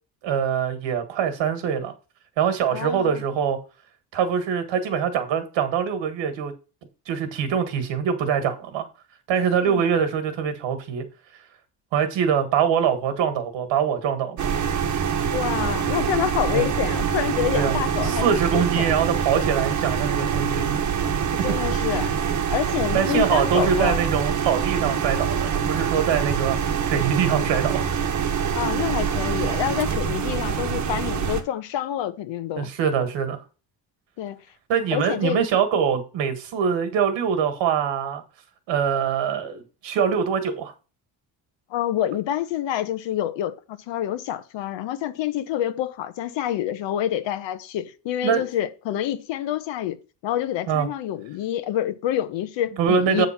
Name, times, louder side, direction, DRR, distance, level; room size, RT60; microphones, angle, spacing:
voice 1, 0.2-1.9 2.4-3.6 4.1-6.5 7.1-8.9 9.3-11.0 11.9-14.5 16.5-16.7 17.5-20.7 22.9-26.6 26.9-27.8 32.6-33.4 34.7-38.2 38.7-40.7 48.2-48.4 50.7-50.9 52.8-53.3, right 7 dB, 85° right, 1.8 m, -23 dB
voice 2, 2.7-3.2 9.6-9.8 15.3-19.0 21.4-22.1 22.5-24.0 28.5-32.7 34.2-34.4 34.9-35.4 41.7-50.0 50.2-53.3, left 11 dB, 85° left, 1.2 m, -27 dB
sound 1, 14.4-31.4, right 7 dB, 40° right, 1.1 m, -25 dB
8.4 x 3.8 x 5.8 m
cardioid pair, 175°, 43 cm